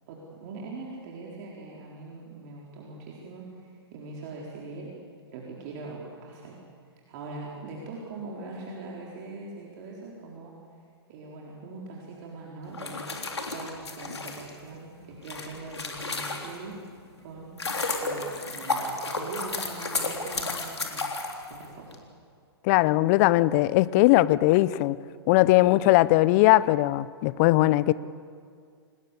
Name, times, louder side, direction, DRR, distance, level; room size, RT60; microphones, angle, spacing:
voice 1, 0.1-4.9 5.3-6.6 7.1-10.5 11.1-13.0 13.5-16.8 17.2-17.5 18.0-21.0 21.5-21.9, right 3 dB, 45° right, 4.3 m, -42 dB
sound 1, 12.7-16.8 17.3-22.0, left 3 dB, 85° left, 3.6 m, -32 dB
voice 2, 22.6-25.0 25.3-27.9, left 17 dB, 40° left, 0.7 m, -20 dB
26.5 x 19.5 x 8.4 m
figure-of-eight pair, 115°, 14 cm